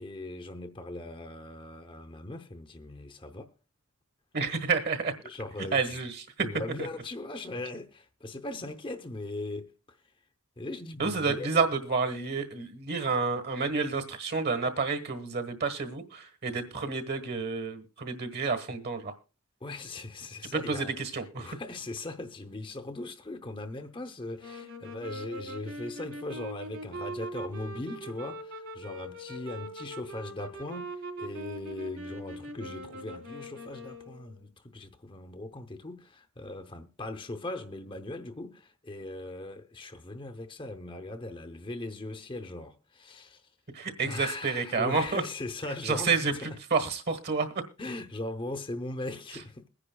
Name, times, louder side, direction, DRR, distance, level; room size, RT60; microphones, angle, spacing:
voice 1, 0.0-3.5 5.2-6.0 6.4-10.0 10.6-11.5 19.6-20.9 21.4-43.5 44.0-46.6 47.8-49.7, left 2 dB, 25° left, 0.7 m, -39 dB
voice 2, 4.3-5.1 5.7-6.5 11.0-19.1 20.4-21.6 43.7-45.2 45.8-47.6, right 4 dB, 50° right, 1.4 m, -30 dB
sound 1, 24.4-34.4, right 1 dB, 65° right, 3.1 m, -41 dB
22.0 x 10.0 x 2.2 m
head